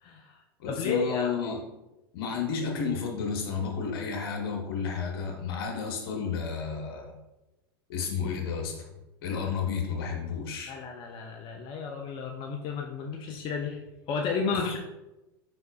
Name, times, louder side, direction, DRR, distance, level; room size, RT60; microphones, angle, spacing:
voice 1, 0.0-1.3 10.7-13.8 14.1-14.8, left 5 dB, 40° left, 2 dB, 0.5 m, -33 dB
voice 2, 0.6-1.6 2.1-7.1 7.9-8.9 9.2-10.8 14.5-14.6, left 6 dB, 70° left, 1 dB, 1.1 m, -31 dB
4.8 x 4.1 x 2.3 m, 0.96 s
hypercardioid pair, 100°, 13 cm